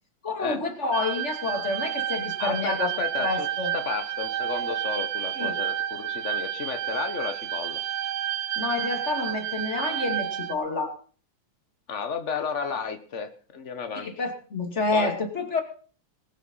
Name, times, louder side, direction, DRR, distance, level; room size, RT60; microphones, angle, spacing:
voice 1, 0.2-2.9 3.2-3.7 5.4-5.6 8.6-11.0 13.9-15.6, left 3 dB, 25° left, 5 dB, 2.5 m, -28 dB
sound 1, 0.9-10.6, right 12 dB, 70° right, 1.9 m, -30 dB
voice 2, 2.4-3.5 3.7-7.8 11.9-14.2 14.9-15.1, left 6 dB, 75° left, 8 dB, 0.6 m, -32 dB
20.5 x 9.4 x 5.6 m, 0.41 s
omnidirectional pair, 3.4 m